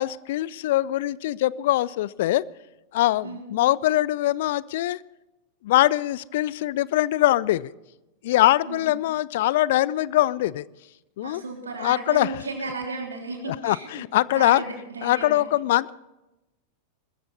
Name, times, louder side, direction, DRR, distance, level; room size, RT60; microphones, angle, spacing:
voice 1, 0.0-2.4 2.9-5.0 5.6-7.7 8.2-10.6 11.2-11.4 11.8-12.3 13.5-14.6 15.0-15.9, left 15 dB, 55° left, 0.4 m, -22 dB
voice 2, 8.6-9.0 11.2-14.0 14.3-15.5, right 3 dB, 75° right, 3.4 m, -34 dB
21.0 x 14.5 x 4.1 m
figure-of-eight pair, 90°, 0 cm